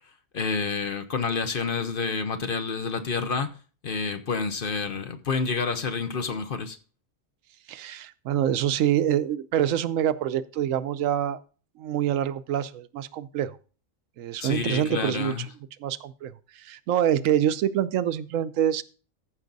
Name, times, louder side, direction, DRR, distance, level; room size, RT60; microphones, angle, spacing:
voice 1, 0.3-3.5 3.8-6.8 14.4-15.5, left 4 dB, 50° left, 1.0 m, -28 dB
voice 2, 7.7-11.4 11.8-13.6 14.2-15.3 15.8-18.8, right 10 dB, 85° right, 1.0 m, -26 dB
14.5 x 5.9 x 4.0 m
omnidirectional pair, 1.3 m